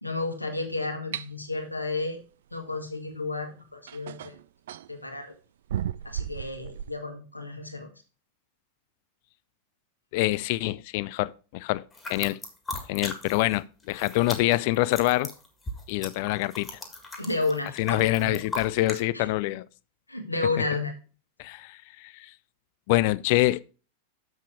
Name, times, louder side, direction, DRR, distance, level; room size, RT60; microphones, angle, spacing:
voice 1, 0.0-2.2 2.5-4.3 4.9-5.3 6.0-7.9 17.2-18.4 19.1-19.3 20.1-20.9, left 3 dB, 85° left, 1.6 m, -32 dB
sound 1, 1.1-1.3 3.1-3.2 3.9-4.9 5.7-7.0, right 10 dB, 60° right, 0.4 m, -34 dB
voice 2, 10.1-12.4 12.9-15.3 15.9-16.8 17.8-19.7 21.4-22.3 22.9-23.6, left 18 dB, 50° left, 0.4 m, -26 dB
sound 2, 11.9-13.6 13.8-19.0, left 2 dB, 15° left, 1.8 m, -38 dB
7.3 x 6.3 x 4.7 m
figure-of-eight pair, 90°, 0 cm